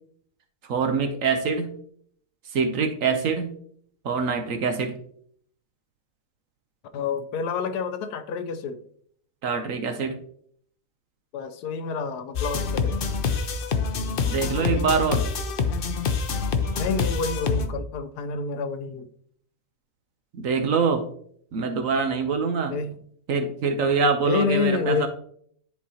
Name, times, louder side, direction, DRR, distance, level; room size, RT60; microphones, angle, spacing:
voice 1, 0.7-1.7 2.5-3.5 4.0-4.9 9.4-10.2 14.3-15.2 20.3-21.0 21.5-22.7 23.3-25.1, right 5 dB, 60° right, 6 dB, 1.0 m, -24 dB
voice 2, 6.9-8.8 11.3-13.0 16.8-19.1 22.7-22.9 24.2-25.1, left 5 dB, 90° left, 9 dB, 1.2 m, -28 dB
sound 1, 12.4-17.7, left 5 dB, 65° left, 0.5 m, -26 dB
10.0 x 4.2 x 2.8 m, 0.63 s
omnidirectional pair, 1.7 m